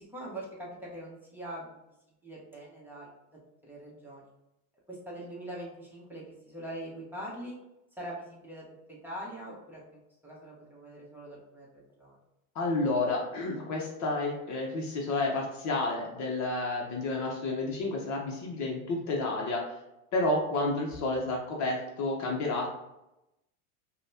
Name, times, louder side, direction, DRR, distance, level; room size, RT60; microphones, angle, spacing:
voice 1, 0.0-1.7 2.2-3.1 3.6-4.3 4.9-7.6 8.0-12.2 20.5-20.6, right 1 dB, 5° right, -5 dB, 1.1 m, -43 dB
voice 2, 12.5-19.7 20.1-22.7, left 2 dB, 40° left, -1 dB, 0.9 m, -30 dB
5.1 x 2.3 x 2.7 m, 0.91 s
supercardioid pair, 105°, 42 cm